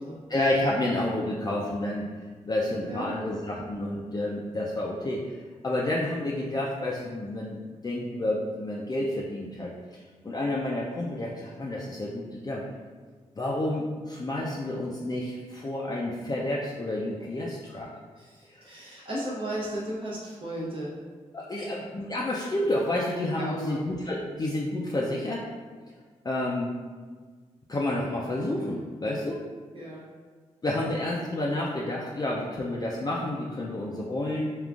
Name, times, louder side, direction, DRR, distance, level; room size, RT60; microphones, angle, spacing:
voice 1, 0.3-2.1 2.4-5.4 5.6-7.6 7.8-12.6 13.4-17.9 18.4-18.6 21.3-25.4 26.2-26.7 27.7-29.4 30.6-34.5, left 1 dB, 30° left, -4 dB, 0.4 m, -30 dB
voice 2, 2.9-3.3 17.2-17.3 18.1-21.0 21.6-21.7 23.4-23.8 29.7-30.0, right 1 dB, 40° right, -6 dB, 0.7 m, -35 dB
3.7 x 2.4 x 2.4 m, 1.5 s
supercardioid pair, 45°, 14 cm